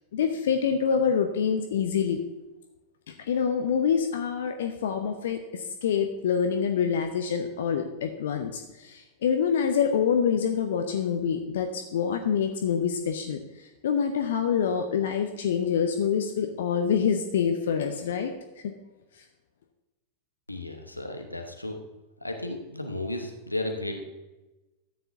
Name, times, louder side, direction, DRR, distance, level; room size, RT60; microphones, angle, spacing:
voice 1, 0.1-2.2 3.1-13.4 13.8-18.3 18.6-18.7, left 7 dB, 60° left, 5 dB, 0.7 m, -26 dB
voice 2, 20.5-21.8 22.2-24.0, left 1 dB, 85° left, 5 dB, 1.1 m, -34 dB
13.5 x 9.2 x 2.7 m, 1.1 s
figure-of-eight pair, 90°, 0 cm